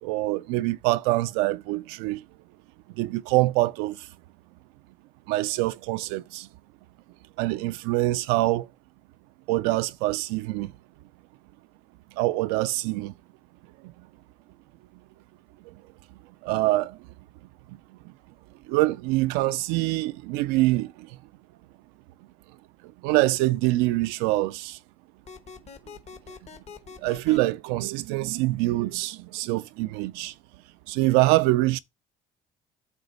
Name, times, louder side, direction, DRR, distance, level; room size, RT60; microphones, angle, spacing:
voice 1, 0.0-2.2 3.0-4.1 5.3-6.5 7.4-8.7 9.5-10.7 12.2-13.1 15.7-15.8 16.4-17.0 18.7-20.9 23.0-24.8 27.0-30.3 30.9-31.8, right 18 dB, 85° right, 0.4 m, -25 dB
item found, 25.3-27.4, left 6 dB, 45° left, 1.1 m, -43 dB
8.1 x 3.0 x 5.1 m
supercardioid pair, 70°, 15 cm